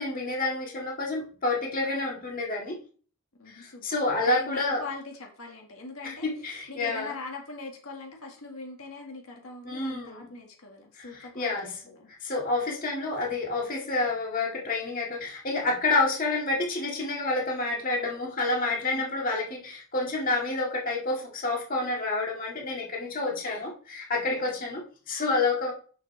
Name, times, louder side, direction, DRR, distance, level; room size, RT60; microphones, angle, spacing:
voice 1, 0.0-2.8 3.5-4.8 6.0-7.1 9.6-10.2 11.0-11.1 11.4-11.7 12.2-25.7, left 3 dB, 40° left, -2 dB, 1.9 m, -29 dB
voice 2, 3.4-12.1 18.9-19.1 23.2-23.6 24.3-24.6, left 3 dB, 85° left, 1 dB, 1.7 m, -42 dB
6.5 x 6.4 x 3.2 m, 0.41 s
head